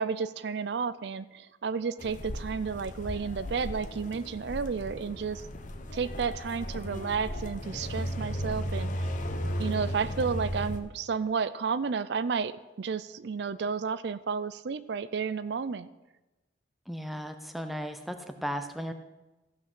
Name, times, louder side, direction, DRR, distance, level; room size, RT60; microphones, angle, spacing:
voice 1, 0.0-5.4 5.9-9.1 9.6-15.9, right 5 dB, 65° right, 15 dB, 0.4 m, -32 dB
sound 1, 2.0-10.8, equal, 45° left, 0.9 m, -35 dB
voice 2, 16.9-18.9, equal, ahead, 6 dB, 0.6 m, -36 dB
14.5 x 6.0 x 6.1 m, 1.1 s
head